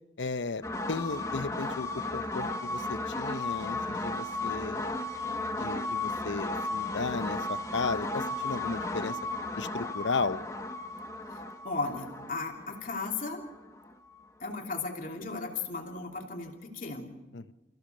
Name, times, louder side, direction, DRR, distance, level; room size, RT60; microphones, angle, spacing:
voice 1, 0.2-0.6 0.9-4.9 5.6-9.2 9.6-10.4 17.3-17.5, left 4 dB, 80° left, 14 dB, 0.7 m, -35 dB
sound 1, 0.6-14.2, left 2 dB, 15° left, 1.1 m, -35 dB
voice 2, 11.3-13.5 14.4-17.1, left 3 dB, 45° left, 2 dB, 2.9 m, -36 dB
30.0 x 15.0 x 6.6 m, 1.1 s
head